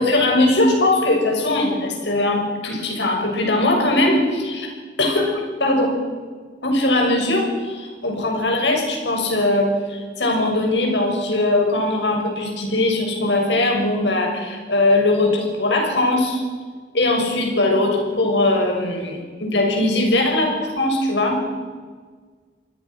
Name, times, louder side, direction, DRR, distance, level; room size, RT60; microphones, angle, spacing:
voice 1, 0.0-4.7 5.0-6.0 6.6-16.4 16.9-21.4, left 2 dB, 75° left, 2 dB, 6.6 m, -20 dB
28.0 x 20.5 x 6.3 m, 1.5 s
head